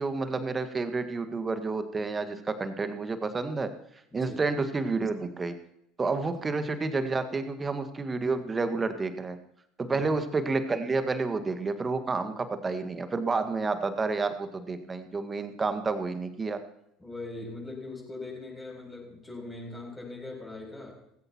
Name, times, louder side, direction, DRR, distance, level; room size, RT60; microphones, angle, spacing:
voice 1, 0.0-3.7 4.1-5.6 6.0-9.4 9.8-16.6, right 3 dB, 25° right, 9 dB, 1.8 m, -30 dB
voice 2, 4.1-4.4 9.8-10.1 17.0-21.0, left 2 dB, 15° left, 0 dB, 7.3 m, -41 dB
19.0 x 16.5 x 3.1 m, 0.76 s
figure-of-eight pair, 65°, 0 cm